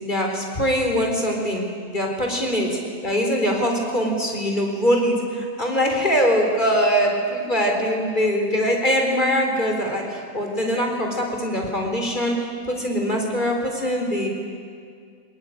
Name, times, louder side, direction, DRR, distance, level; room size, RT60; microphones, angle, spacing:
voice 1, 0.0-1.6 1.9-14.3, equal, 30° left, 1 dB, 4.3 m, -22 dB
21.5 x 20.5 x 10.0 m, 2.2 s
omnidirectional pair, 1.7 m